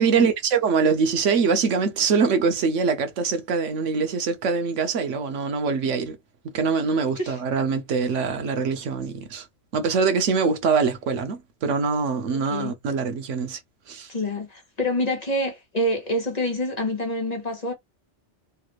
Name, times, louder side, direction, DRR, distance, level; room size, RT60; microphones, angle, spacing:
voice 1, 0.0-6.2 6.5-9.5 9.7-13.6 13.9-14.1, right 5 dB, 90° right, 1.1 m, -23 dB
voice 2, 12.3-12.7 14.1-17.7, left 1 dB, 35° left, 1.2 m, -27 dB
3.3 x 2.4 x 3.0 m
omnidirectional pair, 1.2 m